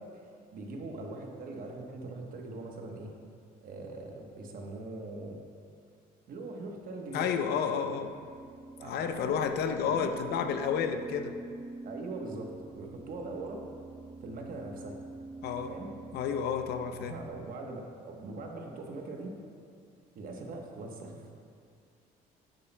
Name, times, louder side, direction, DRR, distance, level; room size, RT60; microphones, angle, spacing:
voice 1, 0.0-3.1 3.6-5.4 6.3-7.9 8.8-9.4 9.8-10.1 11.8-13.6 14.2-15.0 15.6-15.9 17.0-19.3 20.1-21.3, right 2 dB, 60° right, 2 dB, 1.1 m, -41 dB
voice 2, 7.1-8.1 8.8-11.4 15.4-15.7 16.1-17.1, left 7 dB, 70° left, 7 dB, 0.6 m, -31 dB
sound 1, 7.3-17.4, right 3 dB, 25° right, 0.6 m, -47 dB
9.9 x 8.3 x 2.2 m, 2.3 s
cardioid pair, 110°, 17 cm